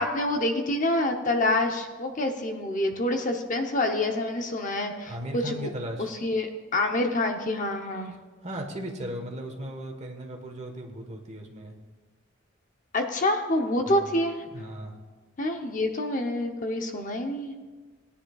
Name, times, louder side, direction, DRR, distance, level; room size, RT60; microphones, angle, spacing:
voice 1, 0.0-5.7 6.0-8.1 12.9-14.4 15.4-17.5, left 1 dB, 40° left, 4 dB, 0.8 m, -27 dB
voice 2, 5.1-6.2 8.4-11.8 13.9-14.1 14.5-15.0, right 1 dB, 35° right, 2 dB, 1.3 m, -37 dB
18.0 x 10.0 x 2.4 m, 1.4 s
head